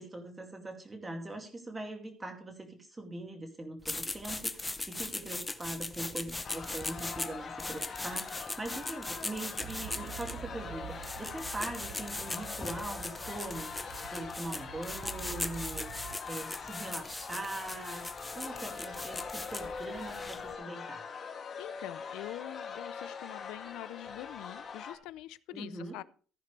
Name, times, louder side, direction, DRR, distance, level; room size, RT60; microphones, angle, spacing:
voice 1, 0.0-21.0 25.5-26.0, right 2 dB, 10° right, 2.4 m, -42 dB
sound 1, 3.8-20.5, left 2 dB, 10° left, 0.7 m, -40 dB
sound 2, 6.4-25.0, left 5 dB, 30° left, 2.4 m, -43 dB
sound 3, 9.6-16.2, right 12 dB, 55° right, 0.5 m, -47 dB
voice 2, 21.6-26.0, left 15 dB, 80° left, 0.5 m, -44 dB
15.0 x 10.0 x 3.3 m
cardioid pair, 175°, 0 cm